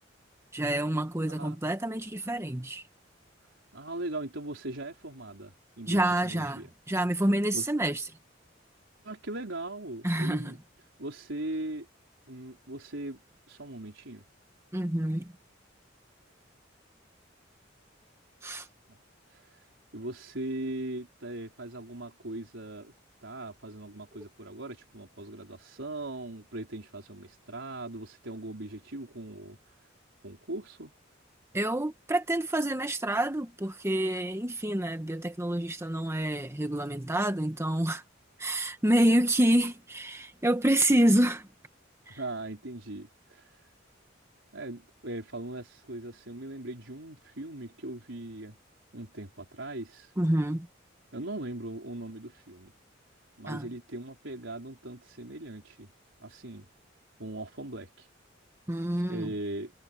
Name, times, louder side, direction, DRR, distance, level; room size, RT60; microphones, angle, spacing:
voice 1, 0.5-2.8 5.9-8.0 10.0-10.5 14.7-15.3 18.4-18.7 31.5-38.0 38.4-41.5 42.1-42.2 50.2-50.7 53.5-53.7 58.7-59.3, right 1 dB, 15° right, 1.2 m, -27 dB
voice 2, 1.3-1.6 3.7-6.7 7.5-7.7 9.0-10.6 11.0-11.9 12.3-13.2 13.5-14.2 18.9-19.0 19.3-19.7 19.9-22.9 23.2-29.6 30.2-30.9 42.1-43.7 44.5-48.6 48.9-50.1 51.1-52.7 53.4-55.9 56.2-56.7 57.2-58.1 59.1-59.7, right 2 dB, 75° right, 4.4 m, -39 dB
head